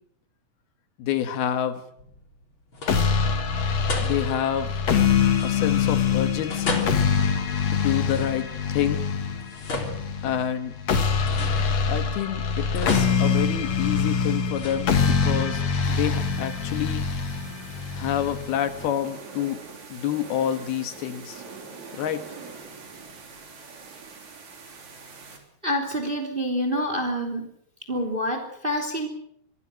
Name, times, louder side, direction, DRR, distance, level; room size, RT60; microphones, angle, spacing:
voice 1, 1.0-1.9 4.0-4.7 5.4-6.8 7.7-9.1 10.2-10.8 11.9-17.1 18.0-19.6 19.9-21.4 21.9-22.3, left 10 dB, 75° left, 9 dB, 3.3 m, -28 dB
sound 1, 2.0-2.4 2.7-3.3 3.9-4.5 5.3-6.0 6.5-8.7 9.3-10.7 11.2-12.2 12.7-14.0 14.5-15.4, left 2 dB, 30° left, 3.9 m, -35 dB
sound 2, 2.9-18.9, left 6 dB, 50° left, 2.7 m, -24 dB
sound 3, 15.8-25.4, right 5 dB, 50° right, 4.5 m, -44 dB
voice 2, 25.6-27.4 27.9-29.1, equal, 15° right, 5 dB, 2.7 m, -27 dB
25.5 x 21.5 x 6.4 m, 0.70 s
omnidirectional pair, 4.5 m